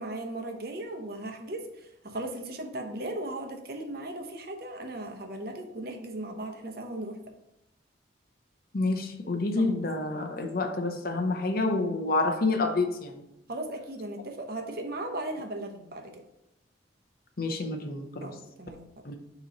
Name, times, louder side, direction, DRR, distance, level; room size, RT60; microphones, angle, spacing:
voice 1, 0.0-7.2 9.6-9.8 13.5-16.2 18.2-18.9, right 1 dB, 55° right, 4 dB, 0.8 m, -37 dB
voice 2, 8.7-13.2 17.4-18.3 19.0-19.1, left 3 dB, 50° left, 5 dB, 0.7 m, -28 dB
6.6 x 3.0 x 5.2 m, 0.86 s
head